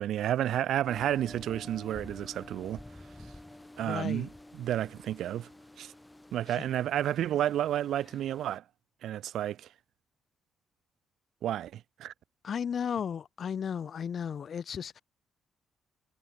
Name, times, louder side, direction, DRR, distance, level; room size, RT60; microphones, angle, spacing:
voice 1, 0.0-2.8 3.8-5.5 5.8-5.9 6.3-8.6 9.0-9.7 11.4-12.1, right 11 dB, 75° right, 1.4 m, -31 dB
sound 1, 0.9-8.6, left 1 dB, 10° left, 3.9 m, -50 dB
voice 2, 3.8-4.3 12.4-15.0, left 7 dB, 50° left, 3.3 m, -34 dB
cardioid pair, 90°, 0 cm